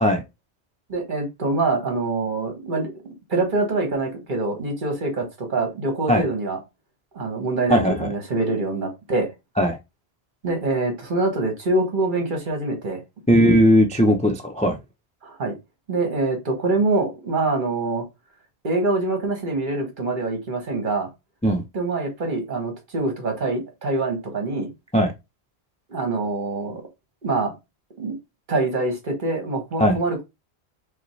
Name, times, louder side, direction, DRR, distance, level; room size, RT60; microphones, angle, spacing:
voice 1, 0.9-3.0 3.3-6.6 7.1-9.3 10.4-13.0 15.2-15.5 15.9-18.0 18.6-21.1 21.7-24.7 25.9-26.8 27.2-27.5 28.0-28.2 28.5-30.2, right 2 dB, 50° right, 1.2 m, -25 dB
voice 2, 7.7-8.1 9.6-9.8 13.3-14.8 21.4-21.6 24.9-25.1 29.8-30.0, equal, 10° left, 0.3 m, -18 dB
5.0 x 2.2 x 3.1 m
omnidirectional pair, 1.1 m